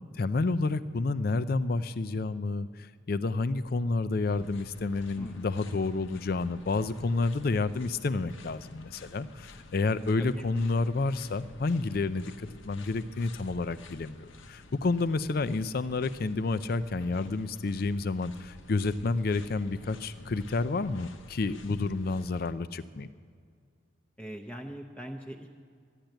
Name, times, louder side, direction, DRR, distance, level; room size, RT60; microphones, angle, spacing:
voice 1, 0.2-2.7 3.1-23.1, left 3 dB, 50° left, 13 dB, 0.4 m, -30 dB
sound 1, 4.2-22.5, left 2 dB, 75° left, 0.9 m, -51 dB
voice 2, 24.2-25.5, equal, 5° left, 1 dB, 0.7 m, -41 dB
12.0 x 12.0 x 9.0 m, 2.1 s
head